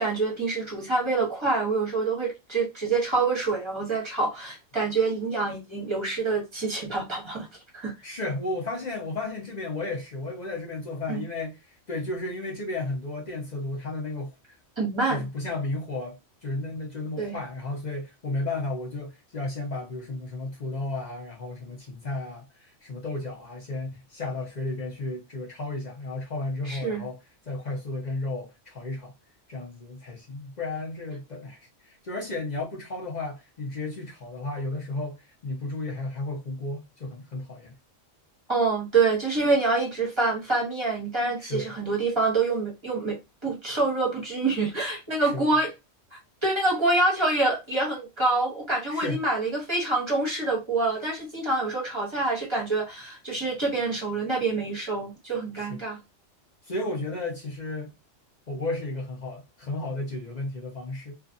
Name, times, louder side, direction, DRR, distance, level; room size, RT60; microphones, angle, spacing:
voice 1, 0.0-7.5 7.8-7.9 11.1-11.2 14.8-15.2 17.2-17.4 26.6-27.0 38.5-45.7 46.1-56.0, right 3 dB, 25° right, 0.9 m, -26 dB
voice 2, 8.0-14.3 15.1-29.1 29.5-37.8 41.4-41.7 45.2-45.5 48.9-49.2 55.6-55.8 56.6-57.9 58.5-61.1, left 2 dB, 45° left, 0.7 m, -33 dB
2.5 x 2.4 x 2.5 m
omnidirectional pair, 1.3 m